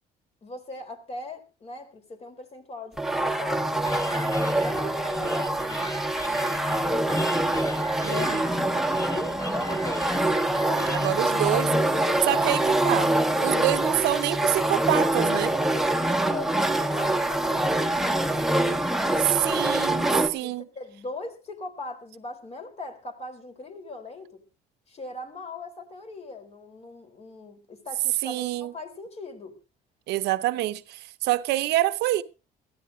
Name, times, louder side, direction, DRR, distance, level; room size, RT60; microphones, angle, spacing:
voice 1, 0.4-3.8 4.5-6.0 8.0-8.3 9.1-10.3 10.6-11.0 12.0-12.4 13.3-13.7 14.0-14.1 15.3-19.5 20.4-24.4 24.9-29.6, left 3 dB, 40° left, 3.9 m, -40 dB
sound 1, 3.0-20.3, right 1 dB, ahead, 1.2 m, -25 dB
sound 2, 3.9-11.3, left 2 dB, 20° left, 3.1 m, -40 dB
voice 2, 8.0-8.5 10.9-11.7 12.3-13.1 13.4-15.5 19.4-20.6 28.2-28.7 30.1-32.2, right 15 dB, 85° right, 0.8 m, -26 dB
21.0 x 15.0 x 2.7 m
cardioid pair, 110°, 17 cm